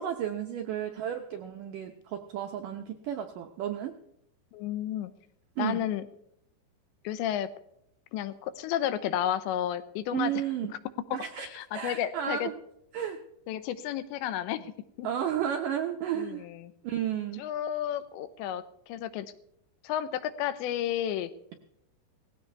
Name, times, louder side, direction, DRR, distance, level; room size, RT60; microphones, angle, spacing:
voice 1, 0.0-3.9 5.6-5.9 10.1-10.7 11.1-11.5 11.7-12.6 12.9-13.2 15.0-16.5 16.8-17.4, right 10 dB, 80° right, 4 dB, 1.9 m, -32 dB
voice 2, 4.5-5.1 5.6-6.1 7.0-7.5 8.1-10.3 11.1-12.5 13.5-14.7 15.0-15.1 16.1-16.7 17.4-19.3 19.8-21.3, left 11 dB, 90° left, 12 dB, 3.1 m, -32 dB
18.5 x 16.0 x 3.4 m, 0.78 s
omnidirectional pair, 5.0 m